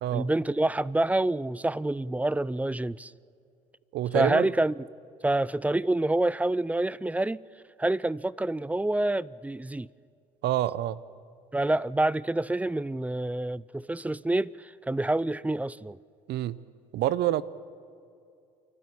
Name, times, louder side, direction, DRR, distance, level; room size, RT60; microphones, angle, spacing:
voice 1, 0.1-3.1 4.1-4.7 5.2-7.4 7.8-9.9 11.5-16.0, right 2 dB, 10° right, 0.4 m, -27 dB
voice 2, 3.9-4.5 10.4-11.0 16.3-16.6 16.9-17.4, right 13 dB, 65° right, 0.7 m, -27 dB
28.5 x 12.0 x 8.6 m
hypercardioid pair, 65°, 19 cm